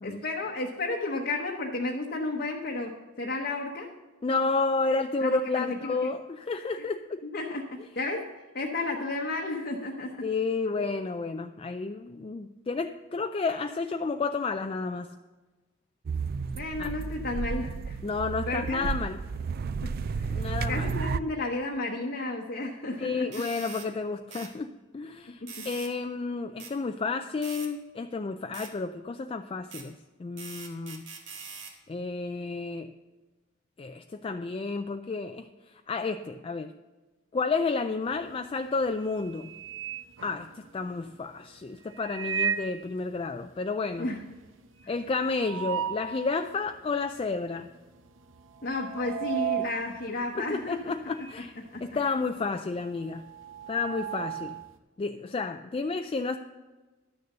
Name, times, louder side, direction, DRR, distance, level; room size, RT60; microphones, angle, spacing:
voice 1, 0.0-3.9 5.2-6.1 7.3-8.3 8.5-10.3 16.5-18.0 18.5-18.8 19.8-20.3 20.7-23.3 25.4-25.7 44.0-44.3 48.6-50.9 51.7-51.9, left 2 dB, 55° left, 0 dB, 0.9 m, -32 dB
voice 2, 4.2-7.2 10.2-15.1 16.8-16.9 18.0-19.2 20.3-20.9 23.0-29.9 30.2-31.1 31.9-32.9 33.8-35.5 35.9-36.7 37.3-39.5 40.2-44.1 44.9-47.7 50.4-51.5 51.8-53.2 53.7-54.6 55.0-56.4, left 4 dB, 30° left, 7 dB, 0.3 m, -31 dB
sound 1, 16.1-21.2, right 5 dB, 50° right, 0.4 m, -32 dB
sound 2, 23.3-23.9 24.3-24.5 25.5-25.9 26.6-26.7 27.4-27.7 28.5-28.7 29.7-29.9 30.4-31.8, right 5 dB, 70° right, 1.6 m, -43 dB
sound 3, 38.1-38.5 38.9-40.9 41.9-42.9 43.3-43.4 43.6-43.7 44.1-46.2 46.7-46.8 47.6-47.9 48.2-51.5 51.8-54.7, right 8 dB, 85° right, 0.8 m, -35 dB
11.5 x 6.6 x 6.6 m, 1.2 s
head